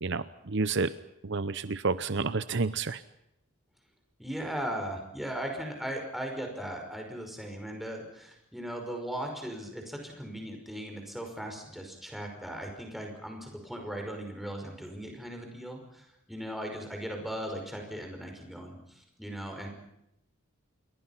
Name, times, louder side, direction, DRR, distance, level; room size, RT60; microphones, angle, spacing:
voice 1, 0.0-0.9 1.2-3.0, right 4 dB, 55° right, 14 dB, 0.8 m, -30 dB
voice 2, 4.2-19.7, right 1 dB, ahead, 2 dB, 5.4 m, -38 dB
28.5 x 22.5 x 5.8 m, 0.84 s
head